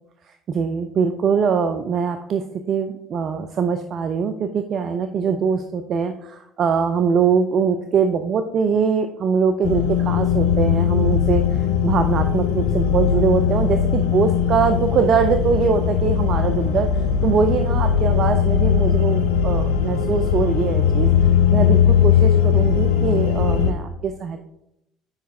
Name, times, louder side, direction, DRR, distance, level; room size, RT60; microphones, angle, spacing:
voice 1, 0.5-16.9 17.2-21.1 21.5-24.4, right 6 dB, 50° right, 8 dB, 0.4 m, -22 dB
sound 1, 9.6-23.7, left 8 dB, 70° left, 0.5 m, -19 dB
5.0 x 4.8 x 4.8 m, 0.83 s
figure-of-eight pair, 60°, 0 cm